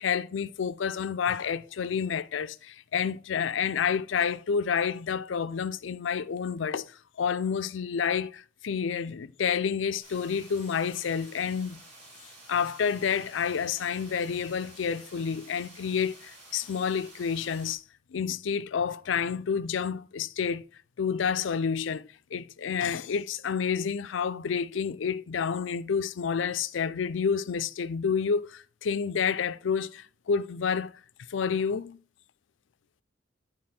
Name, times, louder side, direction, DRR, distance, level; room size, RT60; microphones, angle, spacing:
voice 1, 0.0-6.9 7.2-11.8 12.5-17.8 18.1-20.7 21.0-31.0 31.3-32.0, left 6 dB, 80° left, 0.4 m, -29 dB
sound 1, 10.0-17.7, right 2 dB, 35° right, 3.8 m, -51 dB
10.5 x 3.9 x 4.3 m
head